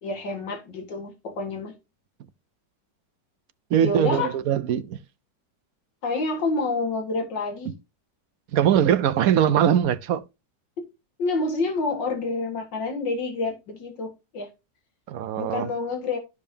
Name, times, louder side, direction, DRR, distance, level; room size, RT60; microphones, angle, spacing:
voice 1, 0.0-1.7 3.8-4.3 6.0-7.7 10.8-10.9 11.2-14.5 15.4-16.2, left 3 dB, 90° left, 2.4 m, -28 dB
voice 2, 3.7-5.0 8.5-10.2 15.1-15.7, right 9 dB, 65° right, 1.0 m, -21 dB
13.0 x 5.2 x 2.7 m
omnidirectional pair, 1.9 m